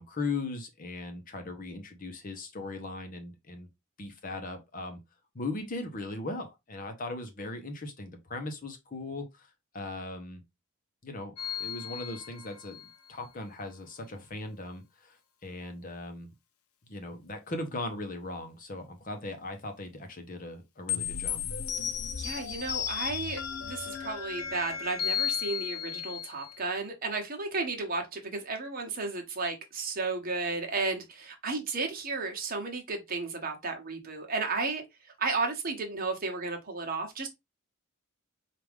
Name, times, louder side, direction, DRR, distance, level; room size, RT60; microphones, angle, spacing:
voice 1, 0.0-3.7 4.0-5.0 5.3-10.4 11.0-16.3 16.8-21.4, left 2 dB, 40° left, 0.8 m, -38 dB
sound 1, 11.4-12.9 20.9-26.6, left 8 dB, 85° left, 0.7 m, -34 dB
voice 2, 22.2-34.8 35.2-37.3, right 3 dB, 40° right, 1.0 m, -33 dB
4.7 x 2.5 x 3.4 m
head